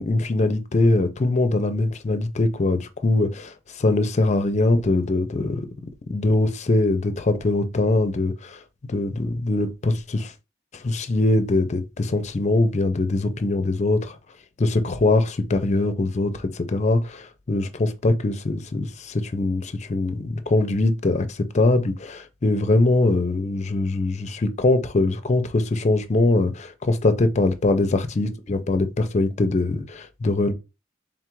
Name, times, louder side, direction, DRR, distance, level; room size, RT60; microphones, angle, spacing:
voice 1, 0.0-8.6 8.9-10.3 10.7-14.2 14.6-30.5, left 2 dB, 35° left, 0.5 m, -22 dB
3.6 x 2.4 x 4.5 m
head